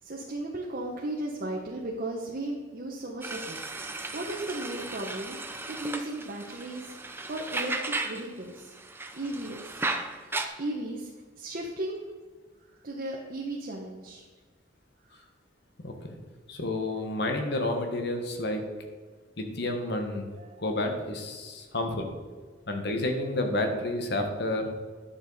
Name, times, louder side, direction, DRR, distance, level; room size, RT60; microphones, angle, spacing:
voice 1, 0.0-6.9 7.3-8.7 9.1-9.8 10.5-11.1 11.4-12.0 12.7-14.2 20.4-20.6, right 1 dB, 50° right, -2 dB, 1.0 m, -36 dB
sound 1, 3.2-8.3 8.6-10.5, right 2 dB, 10° right, 0.6 m, -35 dB
voice 2, 16.5-18.6 19.4-20.3 20.6-22.1 22.7-24.7, left 1 dB, 60° left, 4 dB, 1.3 m, -30 dB
10.5 x 6.9 x 4.1 m, 1.4 s
head